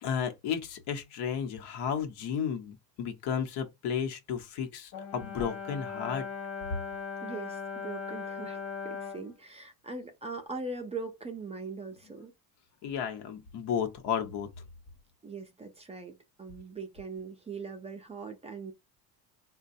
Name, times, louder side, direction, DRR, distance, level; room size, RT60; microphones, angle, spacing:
voice 1, 0.0-6.3 12.8-14.5, left 7 dB, 85° left, 0.9 m, -33 dB
Brass instrument, 4.9-9.3, left 5 dB, 40° left, 0.6 m, -38 dB
voice 2, 7.2-12.3 15.2-18.7, right 4 dB, 15° right, 0.3 m, -41 dB
3.9 x 2.2 x 2.6 m
cardioid pair, 160°, 39 cm